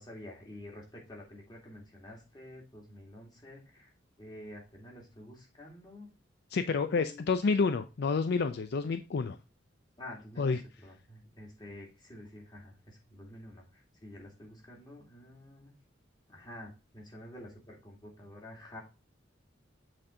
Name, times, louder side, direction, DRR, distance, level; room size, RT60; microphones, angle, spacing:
voice 1, 0.0-6.1 6.7-7.4 10.0-15.7 16.3-18.8, left 1 dB, 25° left, -1 dB, 2.4 m, -49 dB
voice 2, 6.5-9.4 10.4-10.6, left 4 dB, 60° left, 10 dB, 0.4 m, -29 dB
7.6 x 4.3 x 3.7 m, 0.29 s
head